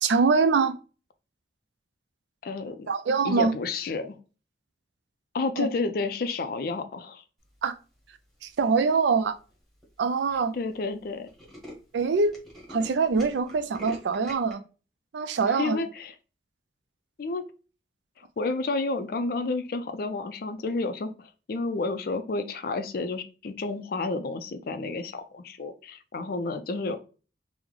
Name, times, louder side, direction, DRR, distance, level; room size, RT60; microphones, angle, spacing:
voice 1, 0.0-0.7 2.9-3.5 5.6-5.7 7.6-7.7 8.4-9.4 10.0-10.5 11.9-12.3 12.7-14.6 15.1-15.8, right 4 dB, 80° right, 0.4 m, -24 dB
voice 2, 2.4-2.9 3.2-4.2 5.3-7.2 10.5-11.3 15.6-16.1 17.2-17.4 18.2-27.0, left 3 dB, 55° left, 0.4 m, -31 dB
Tools, 8.5-8.9 9.5-9.6 9.8-9.9 10.2-10.4 10.7-10.8 11.0-14.5, left 1 dB, ahead, 1.0 m, -45 dB
3.6 x 2.1 x 3.1 m
head